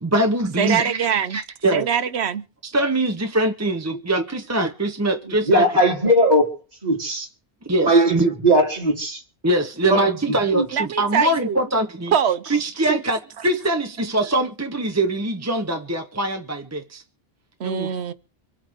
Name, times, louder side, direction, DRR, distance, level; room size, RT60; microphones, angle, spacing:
voice 1, 0.0-1.9 2.6-5.8 7.6-8.3 9.4-12.1 12.5-17.0 17.6-17.9, right 1 dB, 15° right, 0.8 m, -23 dB
voice 2, 0.6-1.4 1.7-2.4 10.7-11.6 12.1-12.6 12.9-13.0 17.6-18.1, right 8 dB, 80° right, 1.1 m, -23 dB
voice 3, 5.3-6.5 6.8-7.3 7.8-9.2 9.9-10.1 10.5-10.7, right 1 dB, 40° right, 2.6 m, -18 dB
25.5 x 8.6 x 3.5 m
omnidirectional pair, 1.1 m